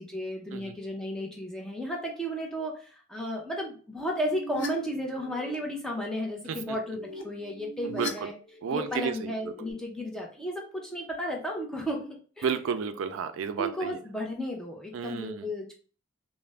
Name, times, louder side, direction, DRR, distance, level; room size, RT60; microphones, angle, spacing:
voice 1, 0.0-8.3 8.7-12.1 12.4-12.5 13.6-15.7, equal, 5° left, -1 dB, 0.5 m, -34 dB
sound 1, 4.0-4.7 5.0-5.5 6.5-8.1 8.4-8.9 9.3-9.7, equal, 60° left, 0.5 m, -41 dB
voice 2, 7.8-8.3 8.6-9.3 12.4-14.0 14.9-15.5, right 6 dB, 75° right, 10 dB, 0.3 m, -32 dB
2.4 x 2.0 x 3.2 m, 0.41 s
head